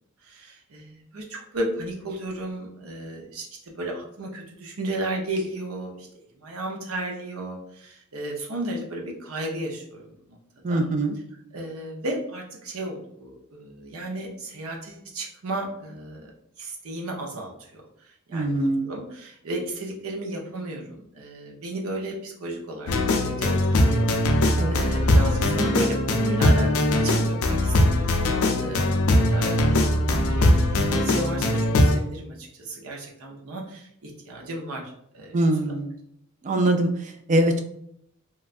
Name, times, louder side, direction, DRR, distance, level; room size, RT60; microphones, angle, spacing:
voice 1, 0.2-6.1 6.4-10.4 10.7-10.8 11.5-16.3 16.6-35.3 35.7-35.8, right 1 dB, 75° right, 0 dB, 0.7 m, -34 dB
voice 2, 10.6-11.1 18.3-18.9 24.5-24.8 35.3-36.0 36.4-37.6, right 1 dB, 35° right, 6 dB, 0.3 m, -23 dB
sound 1, 22.9-32.0, left 1 dB, 80° left, 0.4 m, -21 dB
3.1 x 2.3 x 2.4 m, 0.72 s
head